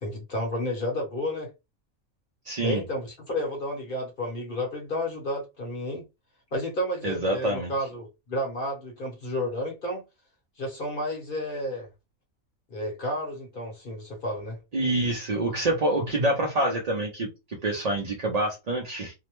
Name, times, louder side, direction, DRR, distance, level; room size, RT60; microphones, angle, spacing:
voice 1, 0.0-1.5 2.6-6.0 6.5-10.0 10.6-11.9 12.7-14.6, left 1 dB, 45° left, 0.9 m, -31 dB
voice 2, 2.4-2.8 7.0-7.7 14.7-19.1, right 1 dB, 55° right, 0.4 m, -26 dB
2.7 x 2.1 x 2.9 m
omnidirectional pair, 1.5 m